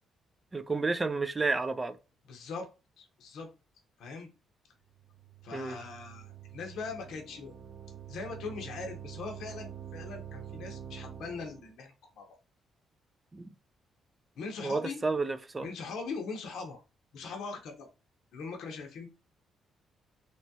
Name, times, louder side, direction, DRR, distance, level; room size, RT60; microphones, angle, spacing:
voice 1, 0.5-2.0 5.5-5.8 13.3-13.5 14.6-15.7, right 3 dB, 25° right, 0.4 m, -31 dB
voice 2, 2.3-2.7 3.0-3.5 4.0-4.3 5.4-7.5 8.1-12.3 14.4-15.0 15.6-16.8 17.1-17.9 18.3-19.1, left 4 dB, 75° left, 0.7 m, -41 dB
sound 1, 4.9-11.7, right 9 dB, 55° right, 0.7 m, -46 dB
3.0 x 2.2 x 2.7 m
cardioid pair, 90°, 0 cm